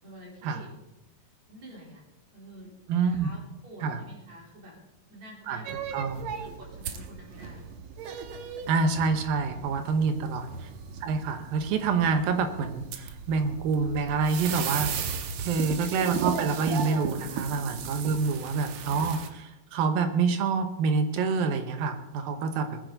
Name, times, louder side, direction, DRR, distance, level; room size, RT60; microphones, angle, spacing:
voice 1, 0.0-0.7 1.5-2.0 2.3-2.7 3.1-4.7 5.1-7.6 17.3-17.4 18.1-18.4, equal, 50° right, -4 dB, 5.0 m, -49 dB
voice 2, 2.9-3.3 3.8-4.0 5.5-5.6 5.9-6.3 8.7-10.5 11.0-15.1 15.4-22.8, right 4 dB, 85° right, 7 dB, 2.9 m, -27 dB
sound 1, 5.6-19.3, right 7 dB, 65° right, 2.0 m, -36 dB
19.0 x 9.9 x 4.0 m, 0.94 s
omnidirectional pair, 4.1 m